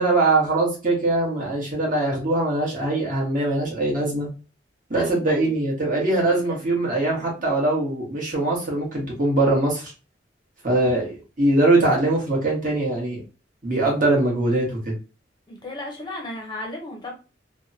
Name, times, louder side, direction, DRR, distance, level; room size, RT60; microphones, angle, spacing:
voice 1, 0.0-4.3 4.9-9.9 10.6-13.2 13.6-14.9, right 2 dB, 45° right, -3 dB, 1.4 m, -22 dB
voice 2, 4.9-5.5 6.2-6.6 7.2-7.4 15.5-17.1, left 1 dB, 25° left, 1 dB, 0.7 m, -36 dB
3.3 x 2.1 x 2.6 m, 0.32 s
head